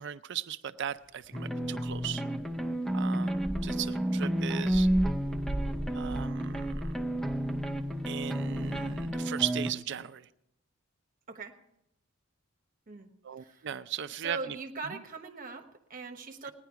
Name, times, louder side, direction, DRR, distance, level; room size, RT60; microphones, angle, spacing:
voice 1, 0.0-2.2 2.9-4.9 5.9-7.0 8.1-10.3 13.2-14.6 14.8-15.0 16.4-16.5, right 9 dB, 55° right, 12 dB, 0.5 m, -37 dB
sound 1, 0.9-9.0, right 1 dB, 60° left, 2.8 m, -40 dB
sound 2, 1.3-9.7, right 1 dB, ahead, 0.5 m, -31 dB
voice 2, 14.2-16.5, right 3 dB, 40° right, 5 dB, 1.2 m, -41 dB
17.5 x 10.5 x 4.7 m, 0.82 s
head